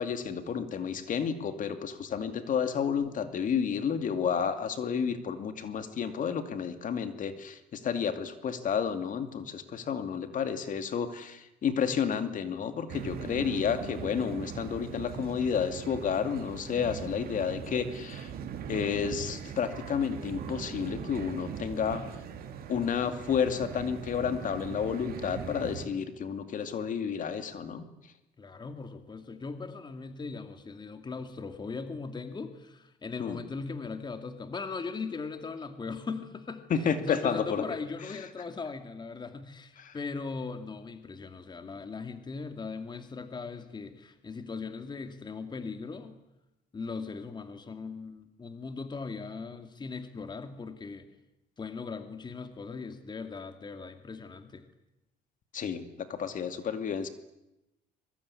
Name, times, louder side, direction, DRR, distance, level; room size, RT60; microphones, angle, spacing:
voice 1, 0.0-18.3 18.7-22.0 22.7-27.8 33.2-33.4 36.7-37.6 39.8-40.0 55.5-57.1, left 7 dB, 50° left, 9 dB, 2.5 m, -31 dB
sound 1, 12.9-25.9, right 7 dB, 65° right, 3.7 m, -40 dB
voice 2, 28.4-46.2 46.7-51.1 51.6-54.6, left 4 dB, 25° left, 8 dB, 2.2 m, -39 dB
24.5 x 22.0 x 9.8 m, 0.93 s
cardioid pair, 110°, 17 cm